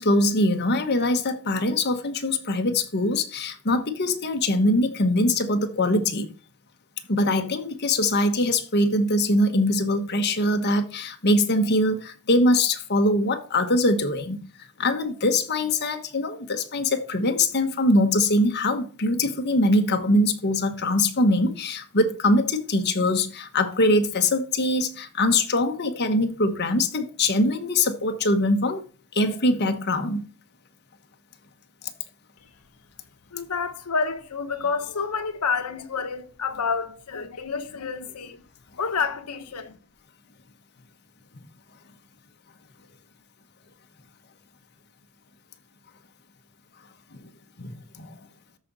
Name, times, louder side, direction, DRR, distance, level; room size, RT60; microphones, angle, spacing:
voice 1, 0.0-6.3 7.1-14.4 14.8-28.8 29.1-30.2 47.6-48.2, left 1 dB, 50° left, 1.2 m, -22 dB
voice 2, 33.3-38.4 38.8-39.8, left 5 dB, 90° left, 1.0 m, -29 dB
13.0 x 5.1 x 4.0 m
head